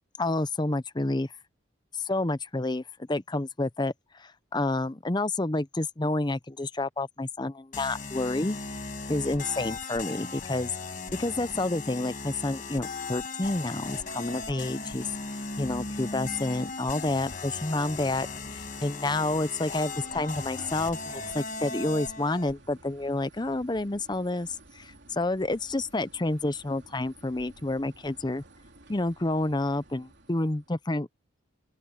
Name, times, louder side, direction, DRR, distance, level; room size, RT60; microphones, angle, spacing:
voice 1, 0.2-1.3 2.0-2.8 3.1-3.9 4.2-8.6 9.1-10.7 11.2-15.1 15.6-18.3 18.5-28.4 28.9-31.1, left 2 dB, 20° left, 0.6 m, -29 dB
sound 1, 7.7-22.5, left 3 dB, 40° left, 1.3 m, -37 dB
sound 2, 13.8-30.8, right 2 dB, 55° right, 3.8 m, -54 dB
open air
head